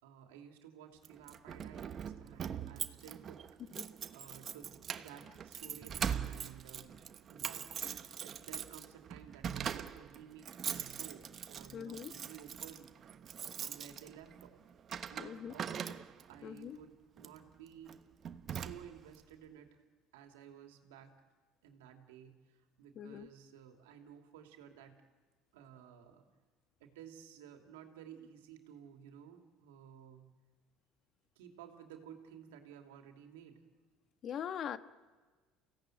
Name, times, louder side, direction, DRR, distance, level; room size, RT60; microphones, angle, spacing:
voice 1, 0.0-3.4 4.1-7.0 7.3-12.9 13.4-14.6 15.1-15.8 16.3-18.0 18.5-19.8 20.1-21.1 21.6-25.0 25.5-26.3 26.8-30.3 31.4-33.6, right 9 dB, 85° right, 4 dB, 2.8 m, -54 dB
Keys jangling, 1.0-16.4 17.2-17.4 17.9-18.0 18.2-19.2, right 8 dB, 45° right, 1.2 m, -42 dB
voice 2, 11.7-12.1 15.2-15.5 16.4-16.8 22.9-23.3 34.2-34.8, left 8 dB, 50° left, 11 dB, 1.3 m, -42 dB
29.0 x 17.0 x 9.3 m, 1.4 s
hypercardioid pair, 75°, 0 cm